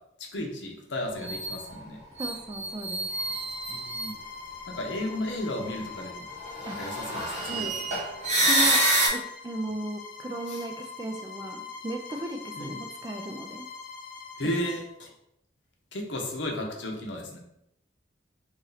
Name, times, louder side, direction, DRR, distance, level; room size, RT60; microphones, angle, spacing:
voice 1, 0.3-2.0 3.7-4.1 4.7-6.3 6.7-7.7 10.5-10.6 12.6-12.7 14.4-15.1 15.9-17.4, left 1 dB, 70° left, 1 dB, 0.8 m, -34 dB
sound 1, 1.2-1.6 2.2-4.1 6.4-9.1, right 1 dB, 40° right, 1.0 m, -27 dB
voice 2, 2.2-3.1 6.7-6.8 7.5-7.7 8.4-8.8 9.1-13.7 14.4-14.5, right 2 dB, 20° right, 4 dB, 0.3 m, -36 dB
Bowed string instrument, 3.1-14.9, left 5 dB, 50° left, 0.4 m, -43 dB
3.0 x 2.7 x 3.9 m, 0.80 s
head